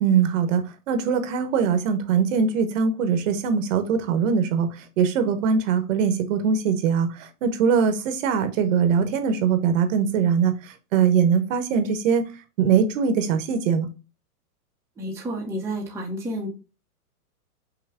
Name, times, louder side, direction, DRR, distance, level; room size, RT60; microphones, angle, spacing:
voice 1, 0.0-12.2 12.6-13.9, right 6 dB, 55° right, 1.0 m, -22 dB
voice 2, 15.0-16.5, right 1 dB, 5° right, 0.7 m, -30 dB
5.7 x 2.2 x 3.5 m
hypercardioid pair, 135°, 46 cm